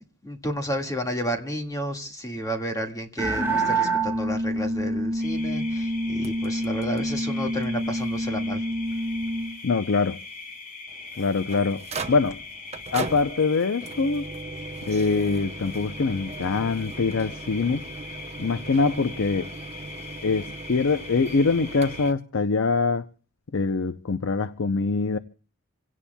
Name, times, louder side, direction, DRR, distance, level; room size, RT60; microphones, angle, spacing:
voice 1, 0.2-8.6, equal, 15° left, 1.8 m, -31 dB
sound 1, 3.2-9.5, right 1 dB, 10° right, 2.2 m, -27 dB
sound 2, 5.2-22.1, left 4 dB, 35° left, 1.4 m, -41 dB
sound 3, 6.2-7.3 7.6-7.7 8.0-8.1 8.7-8.8 10.9-22.1, right 3 dB, 30° right, 0.8 m, -39 dB
voice 2, 9.6-10.2 11.2-12.4 12.9-14.3 14.9-17.8 18.4-19.5 20.2-23.1 23.5-25.2, left 4 dB, 65° left, 0.6 m, -24 dB
27.0 x 17.0 x 2.3 m
head